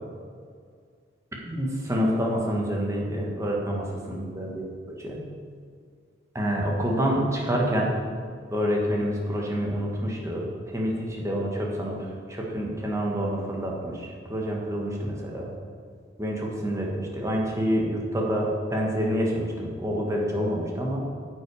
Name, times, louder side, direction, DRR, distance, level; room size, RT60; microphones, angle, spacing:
voice 1, 1.4-5.2 6.3-7.9 8.5-12.0 12.3-15.5 16.2-21.0, equal, 15° right, -2 dB, 1.5 m, -27 dB
9.5 x 8.0 x 4.9 m, 2.1 s
head